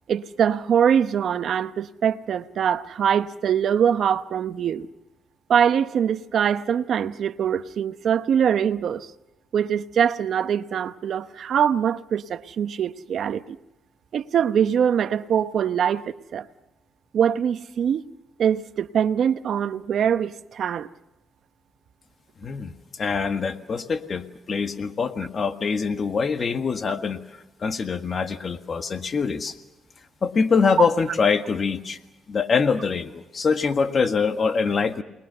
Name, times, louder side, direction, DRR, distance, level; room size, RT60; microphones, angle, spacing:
voice 1, 0.1-4.9 5.5-9.1 9.5-13.6 14.1-16.5 17.1-18.0 18.4-20.9 30.8-30.9, right 8 dB, 65° right, 0.9 m, -23 dB
voice 2, 22.4-22.7 23.0-27.2 27.6-29.5 30.2-32.0 32.3-35.0, left 5 dB, 45° left, 1.7 m, -24 dB
28.5 x 21.0 x 6.9 m
cardioid pair, 90°, 0 cm